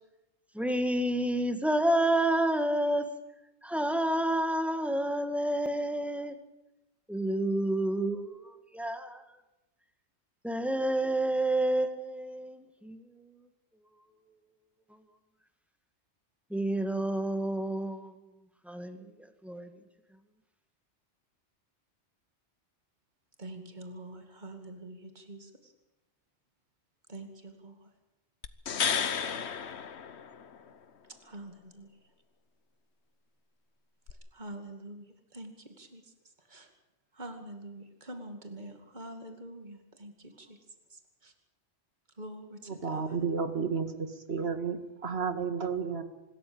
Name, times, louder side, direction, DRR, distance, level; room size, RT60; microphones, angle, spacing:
voice 1, 0.5-3.1 3.6-6.4 7.1-9.2 10.4-13.0 16.5-18.1 18.7-19.1 19.4-19.7, right 1 dB, ahead, 8 dB, 1.8 m, -29 dB
voice 2, 23.4-25.5 27.1-27.8 31.2-31.9 34.3-36.0 36.5-36.7 37.2-40.6 41.2-41.3 42.2-42.6 42.9-43.0, right 1 dB, 40° right, 6 dB, 2.6 m, -45 dB
sound 1, 28.4-30.7 34.1-34.2, left 7 dB, 70° left, 1.3 m, -32 dB
voice 3, 42.6-46.0, right 5 dB, 60° right, 9 dB, 2.2 m, -32 dB
25.5 x 14.0 x 8.8 m, 0.94 s
omnidirectional pair, 1.2 m